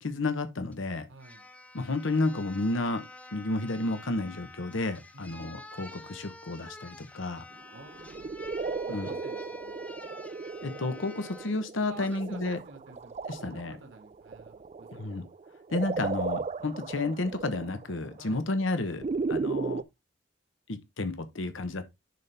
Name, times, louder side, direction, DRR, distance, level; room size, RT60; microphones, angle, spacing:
voice 1, 0.0-1.1 1.7-3.0 3.3-7.4 8.9-9.1 10.6-12.6 13.3-13.8 14.9-15.2 15.7-19.8 20.7-21.9, left 2 dB, 80° left, 1.0 m, -31 dB
sound 1, 0.7-0.8 1.2-11.6 12.0-12.2, left 1 dB, 5° left, 0.6 m, -48 dB
voice 2, 1.1-1.4 5.1-5.5 7.7-8.3 8.6-9.9 11.9-15.1 18.2-18.4, right 3 dB, 80° right, 2.2 m, -50 dB
sound 2, 7.8-19.8, right 4 dB, 35° right, 0.3 m, -36 dB
10.5 x 4.2 x 3.4 m
head